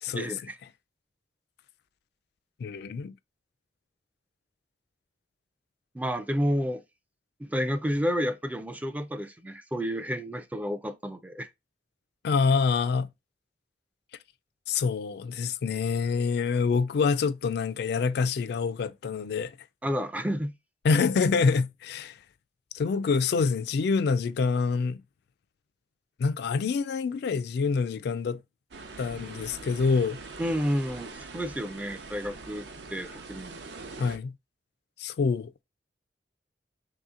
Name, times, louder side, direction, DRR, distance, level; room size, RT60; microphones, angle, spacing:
voice 1, 0.1-0.6 5.9-6.8 7.4-11.5 19.8-20.6 30.4-33.6, equal, 10° right, 0.4 m, -30 dB
voice 2, 2.6-3.1 12.2-13.1 14.7-19.5 20.8-22.2 22.7-25.0 26.2-28.4 29.0-30.2 34.0-34.3 35.0-35.5, left 5 dB, 65° left, 0.3 m, -26 dB
sound 1, 28.7-34.2, right 3 dB, 70° right, 0.6 m, -43 dB
3.1 x 2.8 x 3.6 m
head